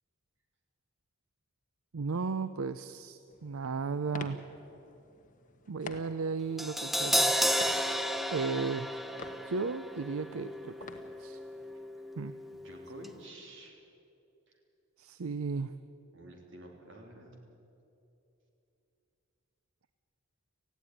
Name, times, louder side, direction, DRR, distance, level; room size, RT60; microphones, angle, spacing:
voice 1, 1.9-4.4 5.7-7.3 8.3-8.9 9.4-10.9 11.2-11.4 12.2-12.3 15.0-15.7, right 4 dB, 80° right, 13 dB, 0.6 m, -35 dB
sound 1, 3.3-11.7, left 3 dB, 40° left, 1.2 m, -50 dB
Crash cymbal, 6.6-12.7 13.0-13.1, equal, ahead, 0.7 m, -33 dB
voice 2, 12.5-13.8 16.1-17.5, right 1 dB, 60° right, 2 dB, 3.3 m, -50 dB
18.5 x 15.0 x 9.9 m, 2.8 s
head